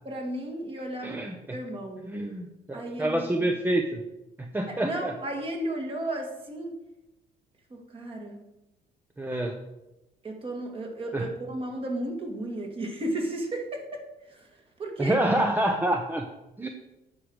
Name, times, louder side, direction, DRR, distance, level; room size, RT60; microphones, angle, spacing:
voice 1, 0.0-1.2 1.5-2.1 2.7-3.5 4.7-6.8 7.7-8.4 10.2-14.5 14.8-15.2, right 1 dB, 30° right, 1 dB, 2.2 m, -34 dB
voice 2, 1.0-1.6 2.1-4.0 4.4-5.1 9.2-9.6 11.1-11.3 15.0-16.3 16.6-16.7, right 1 dB, 10° right, 3 dB, 0.8 m, -27 dB
9.7 x 4.8 x 6.4 m, 0.95 s
cardioid pair, 110°, 17 cm